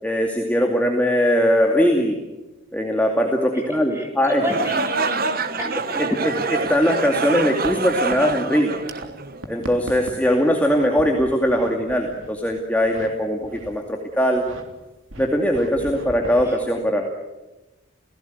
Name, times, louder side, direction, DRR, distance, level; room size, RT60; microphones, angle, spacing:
voice 1, 0.0-2.2 2.7-4.4 6.0-8.8 9.5-14.4 15.2-17.1, equal, 5° left, 1 dB, 2.4 m, -20 dB
voice 2, 3.7-6.2 15.8-16.1 16.5-16.6, equal, 10° right, 2 dB, 7.0 m, -30 dB
sound 1, 4.4-9.6, right 4 dB, 45° right, 1.3 m, -26 dB
sound 2, 6.4-9.1 9.3-13.1 13.4-13.9 14.3-14.6 15.1-16.5, right 1 dB, 70° right, 3.5 m, -39 dB
30.0 x 18.0 x 9.5 m, 1.1 s
head